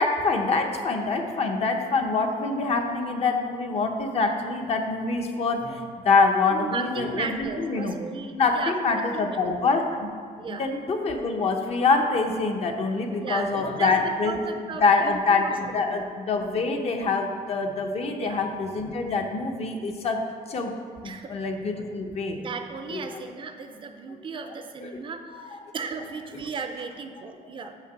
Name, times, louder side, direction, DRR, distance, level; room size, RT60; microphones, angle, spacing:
voice 1, 0.0-8.0 8.3-10.1 10.5-14.3 14.8-20.2 20.5-20.7 21.0-22.4 22.9-23.2 24.4-24.5 24.8-25.0 25.4-25.5 26.3-26.4, left 4 dB, 45° left, 4 dB, 0.8 m, -25 dB
voice 2, 6.5-9.4 10.4-10.7 13.2-16.1 18.1-18.4 21.0-21.3 22.3-27.7, right 5 dB, 35° right, 7 dB, 0.5 m, -36 dB
6.0 x 5.8 x 6.9 m, 2.1 s
cardioid pair, 165°, 15 cm